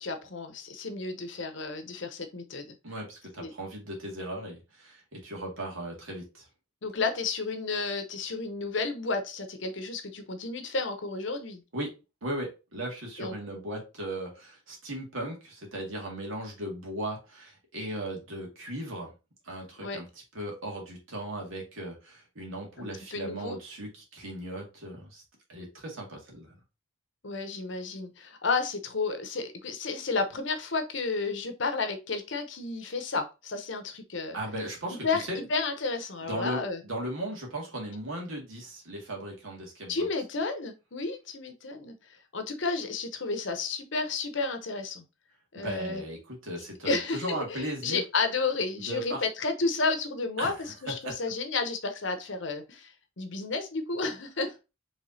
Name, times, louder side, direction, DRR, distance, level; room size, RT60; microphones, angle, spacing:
voice 1, 0.0-2.8 3.4-3.5 6.8-11.6 13.2-13.3 19.8-20.0 22.8-23.6 27.2-34.4 35.0-36.8 39.9-41.9 42.3-45.1 45.5-46.0 46.8-54.6, left 4 dB, 60° left, 7 dB, 0.8 m, -32 dB
voice 2, 2.8-6.5 11.7-11.9 12.2-19.1 19.4-20.1 20.3-25.2 25.5-26.5 34.3-35.0 35.3-35.4 36.2-40.1 45.5-48.0 48.9-49.2 50.4-50.7 51.0-51.2, right 1 dB, 75° right, 0 dB, 2.0 m, -37 dB
4.9 x 3.5 x 2.7 m, 0.28 s
head